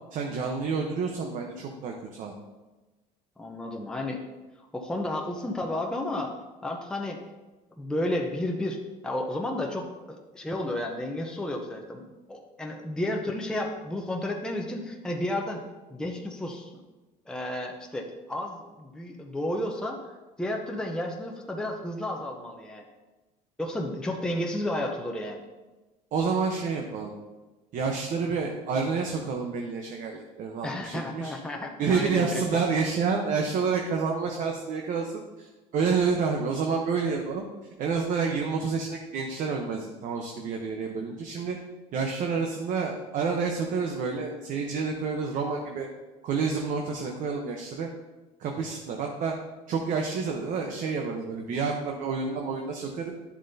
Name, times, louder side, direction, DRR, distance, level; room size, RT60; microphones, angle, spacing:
voice 1, 0.1-2.3 26.1-27.1 27.7-31.3 31.8-37.4 37.8-41.6 41.9-45.9 46.2-47.9 48.4-49.4 49.7-53.1, right 5 dB, 50° right, 2 dB, 1.0 m, -29 dB
voice 2, 3.4-4.2 4.7-6.4 6.6-7.2 7.8-15.6 15.9-16.7 17.3-20.1 20.4-22.8 23.6-25.4 30.6-32.6, left 1 dB, 5° left, 1 dB, 0.8 m, -32 dB
11.0 x 7.2 x 2.8 m, 1.1 s
cardioid pair, 125°, 17 cm